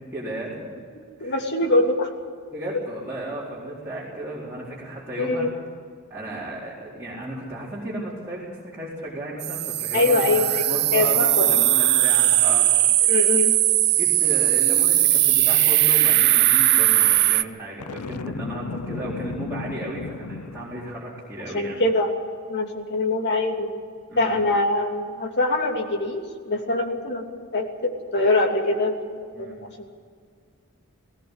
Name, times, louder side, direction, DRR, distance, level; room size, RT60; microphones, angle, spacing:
voice 1, 0.1-0.7 1.2-1.4 2.5-5.5 6.1-12.7 13.9-21.8 24.1-24.4 29.3-29.5, right 1 dB, 10° right, -9 dB, 4.4 m, -34 dB
voice 2, 1.2-2.1 5.2-5.5 9.9-11.4 13.0-13.5 21.5-22.1 22.5-23.7 24.1-29.5, left 2 dB, 50° left, 2 dB, 2.9 m, -23 dB
sound 1, 9.4-17.4, right 14 dB, 50° right, 0.6 m, -19 dB
Boom, 17.8-21.0, left 4 dB, 80° left, 0.6 m, -34 dB
18.5 x 18.5 x 8.3 m, 2.1 s
head